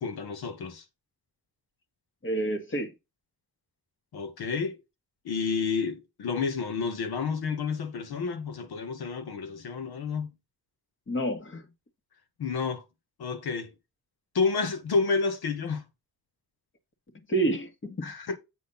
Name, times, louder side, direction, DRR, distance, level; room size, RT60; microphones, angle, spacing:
voice 1, 0.0-0.8 4.1-4.8 5.2-10.3 12.4-12.8 13.2-13.7 14.3-15.8 18.0-18.4, left 5 dB, 90° left, 2.1 m, -30 dB
voice 2, 2.2-2.9 11.1-11.7 17.3-18.1, right 2 dB, 30° left, 1.8 m, -29 dB
8.4 x 4.1 x 5.6 m
wide cardioid pair, 145°, 37 cm